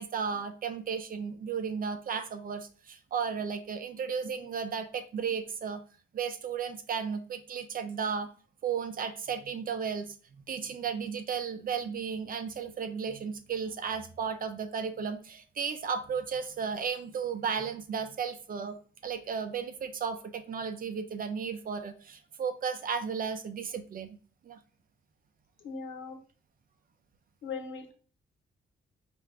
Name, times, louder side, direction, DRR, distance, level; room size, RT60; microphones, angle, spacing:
voice 1, 0.0-5.8 6.1-8.3 8.6-18.8 19.0-24.2 24.4-24.6, right 6 dB, 45° right, 9 dB, 0.4 m, -34 dB
voice 2, 25.6-26.2 27.4-27.9, left 5 dB, 75° left, 3 dB, 1.2 m, -39 dB
4.5 x 2.5 x 3.3 m, 0.41 s
wide cardioid pair, 155°, 20 cm